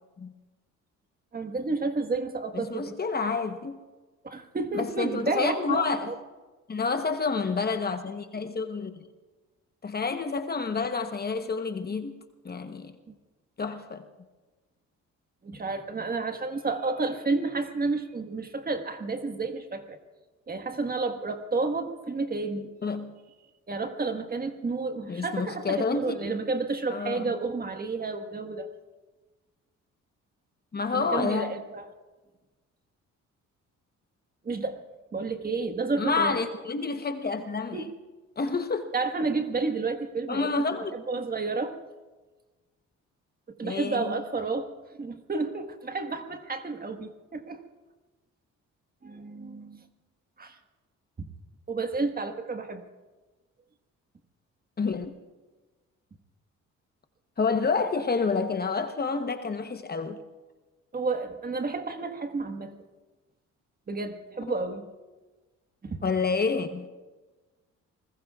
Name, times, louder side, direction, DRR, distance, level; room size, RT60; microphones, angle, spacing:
voice 1, 1.3-2.9 4.2-6.1 15.4-20.0 20.5-22.7 23.7-28.7 30.9-31.9 34.4-34.8 35.1-36.4 37.7-37.9 38.9-40.6 40.9-41.8 43.6-44.7 45.0-47.6 49.0-49.8 50.4-50.5 51.7-52.8 60.9-62.7 63.9-64.9 65.8-66.0, right 3 dB, 30° right, 7 dB, 1.5 m, -31 dB
voice 2, 2.5-3.8 4.7-6.1 6.7-8.9 9.8-12.1 12.4-12.9 13.6-14.0 22.8-23.1 25.1-26.2 26.9-27.3 30.7-31.5 36.0-37.9 38.4-38.9 40.3-41.0 43.6-44.0 54.8-55.1 57.4-60.2 66.0-66.9, left 4 dB, 30° left, 7 dB, 1.0 m, -29 dB
29.0 x 20.5 x 2.4 m, 1.2 s
cardioid pair, 90°, 30 cm